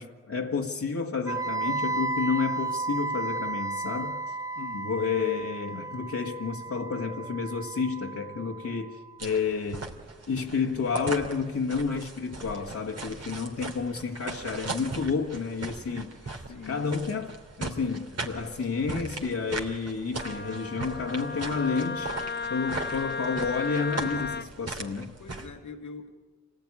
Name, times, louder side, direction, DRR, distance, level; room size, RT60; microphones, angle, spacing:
voice 1, 0.0-4.3 4.7-9.9 10.3-17.3 17.6-22.1 22.5-25.1, left 5 dB, 65° left, -3 dB, 1.7 m, -30 dB
Wind instrument woodwind instrument, 1.3-9.2, right 3 dB, 10° right, 0.7 m, -34 dB
voice 2, 4.5-5.3 16.5-17.0 25.2-26.1, left 5 dB, 85° left, 4 dB, 2.0 m, -43 dB
sound 1, 9.2-25.5, right 3 dB, 60° right, 3.0 m, -39 dB
Wind instrument woodwind instrument 2, 20.2-24.5, left 5 dB, 35° left, 1.2 m, -34 dB
27.0 x 18.5 x 9.8 m, 1.5 s
wide cardioid pair, 75°, 29 cm